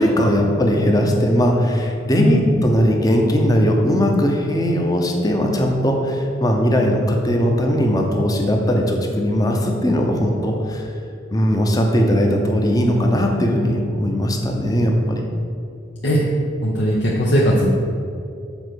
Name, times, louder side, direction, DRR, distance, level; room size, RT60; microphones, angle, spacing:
voice 1, 0.0-10.8 11.3-15.2, equal, 20° left, 1 dB, 0.9 m, -19 dB
voice 2, 16.6-17.7, equal, 60° left, -4 dB, 0.9 m, -18 dB
7.4 x 4.5 x 6.4 m, 2.5 s
head